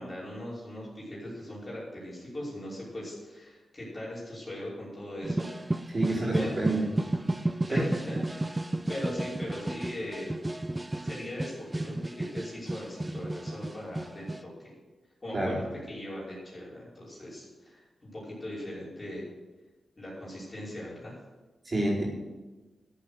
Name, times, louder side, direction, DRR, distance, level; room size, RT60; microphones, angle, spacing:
voice 1, 0.0-5.5 6.3-6.5 7.7-10.3 11.0-14.7 15.2-19.3 20.0-21.2, left 1 dB, 25° left, -7 dB, 5.5 m, -40 dB
sound 1, 5.2-14.4, right 1 dB, 15° right, 0.5 m, -32 dB
voice 2, 5.9-6.9 7.7-7.9 15.3-15.6 21.6-22.0, right 1 dB, 30° right, -5 dB, 4.8 m, -28 dB
13.5 x 8.6 x 6.4 m, 1.2 s
wide cardioid pair, 120°, 0 cm